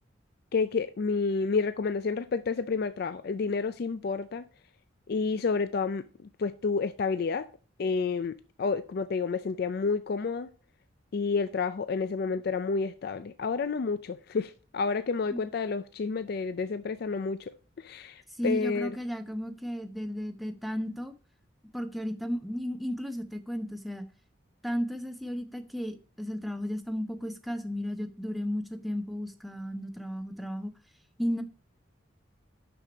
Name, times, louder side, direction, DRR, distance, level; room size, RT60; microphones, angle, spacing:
voice 1, 0.5-4.4 5.1-6.0 6.4-7.5 7.8-10.5 11.1-17.5 17.8-19.0, left 4 dB, 50° left, 0.4 m, -30 dB
voice 2, 18.3-21.1 21.7-24.1 24.6-30.7 31.2-31.4, equal, ahead, 0.6 m, -34 dB
6.3 x 6.0 x 5.0 m
head